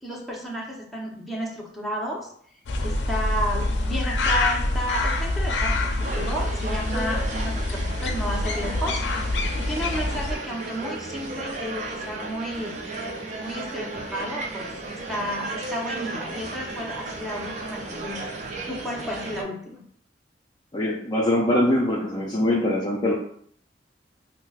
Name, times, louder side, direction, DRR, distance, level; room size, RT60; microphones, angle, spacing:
voice 1, 0.0-2.3 2.8-9.0 9.5-12.7 13.4-18.2 18.7-19.8, equal, ahead, -4 dB, 0.8 m, -32 dB
sound 1, 2.7-10.3, left 2 dB, 85° left, 0.4 m, -26 dB
sound 2, 6.0-19.4, right 3 dB, 45° right, 0.5 m, -34 dB
voice 2, 20.7-23.1, left 1 dB, 25° left, -3 dB, 0.4 m, -23 dB
5.6 x 2.0 x 2.3 m, 0.63 s
head